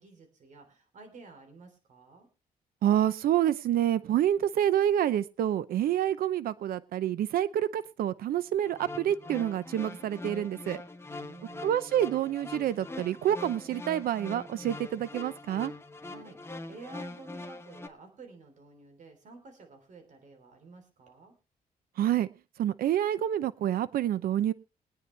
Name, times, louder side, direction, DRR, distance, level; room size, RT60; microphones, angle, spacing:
voice 1, 0.0-2.3 11.1-11.9 16.0-21.3, right 3 dB, 55° right, 6 dB, 3.4 m, -51 dB
voice 2, 2.8-10.8 11.6-15.7 22.0-22.3 22.6-24.5, right 11 dB, 85° right, 17 dB, 0.6 m, -28 dB
sound 1, 8.6-17.9, left 2 dB, 15° left, 1.1 m, -43 dB
22.0 x 9.5 x 3.2 m, 0.30 s
cardioid pair, 110°, 15 cm